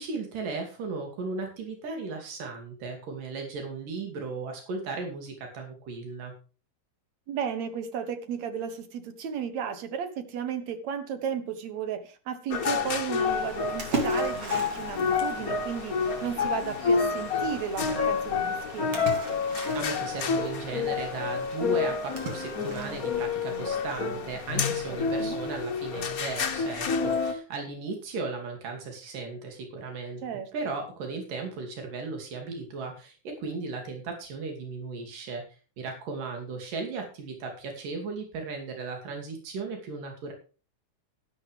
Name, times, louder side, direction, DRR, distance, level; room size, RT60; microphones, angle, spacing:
voice 1, 0.0-6.3 19.7-35.4 35.8-40.3, right 4 dB, 85° right, 3 dB, 4.2 m, -36 dB
voice 2, 7.3-19.1 24.9-25.4 30.2-30.5, right 7 dB, 65° right, 10 dB, 2.5 m, -34 dB
sound 1, 12.5-27.3, left 5 dB, 65° left, 0.8 m, -29 dB
Splash splatter, 13.3-23.2, right 2 dB, 45° right, 3.6 m, -39 dB
12.5 x 12.0 x 3.4 m, 0.36 s
omnidirectional pair, 3.7 m